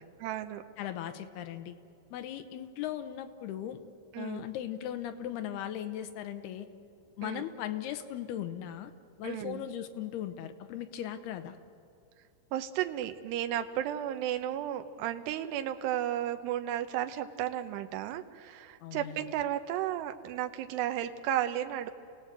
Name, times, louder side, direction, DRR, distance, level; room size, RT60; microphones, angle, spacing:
voice 1, 0.2-0.6 4.1-4.5 7.2-7.4 9.2-9.7 12.5-21.9, right 11 dB, 85° right, 7 dB, 3.0 m, -33 dB
voice 2, 0.8-1.8 2.1-3.8 4.2-6.7 7.2-8.9 9.2-11.6 18.8-19.2, left 11 dB, 80° left, 9 dB, 2.8 m, -38 dB
29.5 x 17.5 x 8.1 m, 2.5 s
omnidirectional pair, 4.8 m